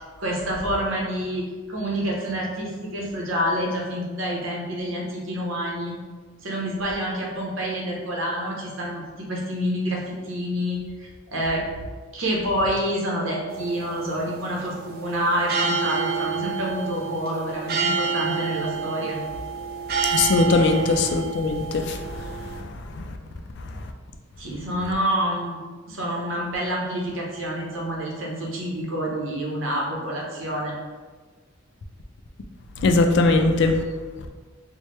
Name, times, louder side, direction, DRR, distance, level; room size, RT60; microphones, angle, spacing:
voice 1, 0.2-6.0 6.4-11.6 12.1-19.2 24.4-25.6 25.9-30.7, equal, 70° right, -2 dB, 0.8 m, -27 dB
sound 1, 13.5-22.6, right 5 dB, 45° right, 0.3 m, -29 dB
voice 2, 20.1-22.0 22.3-22.4 22.6-23.0 32.8-33.8, left 3 dB, 55° left, 5 dB, 0.3 m, -20 dB
4.6 x 2.1 x 3.1 m, 1.4 s
head